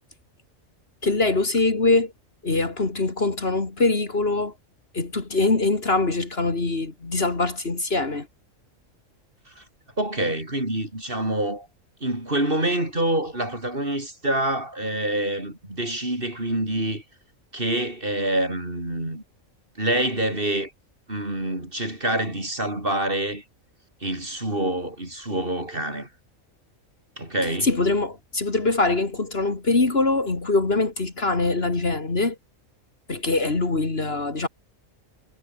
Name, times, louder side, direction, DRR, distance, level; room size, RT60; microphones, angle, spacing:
voice 1, 1.0-2.1 2.4-4.5 4.9-8.3 27.6-32.4 33.1-34.5, left 3 dB, 50° left, 2.7 m, -23 dB
voice 2, 10.0-11.7 12.0-17.0 17.5-19.2 19.8-20.7 21.1-23.4 24.0-26.1 27.2-27.7, right 1 dB, 40° right, 6.8 m, -26 dB
omnidirectional pair, 1.4 m